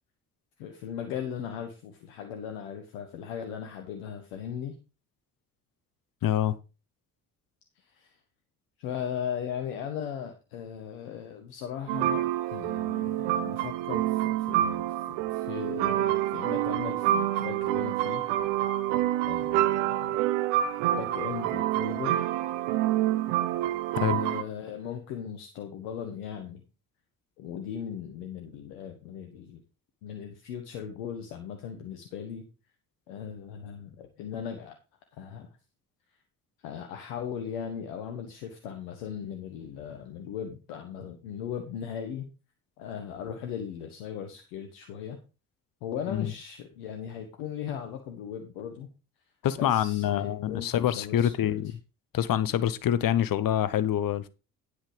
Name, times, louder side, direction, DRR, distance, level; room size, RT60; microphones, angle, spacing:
voice 1, 0.6-4.8 7.8-8.1 8.8-18.2 19.2-20.2 20.9-22.2 24.0-26.6 27.4-29.6 30.0-32.4 33.1-34.8 35.1-35.5 36.6-42.3 42.8-45.2 45.8-48.9 49.6-51.6, left 8 dB, 75° left, 1.4 m, -38 dB
voice 2, 6.2-6.5 24.0-24.2 46.1-46.3 49.4-51.7 52.1-54.3, left 11 dB, 50° left, 1.0 m, -26 dB
sound 1, 11.9-24.4, right 13 dB, 70° right, 0.8 m, -27 dB
10.0 x 6.3 x 5.0 m
hypercardioid pair, 50°, 44 cm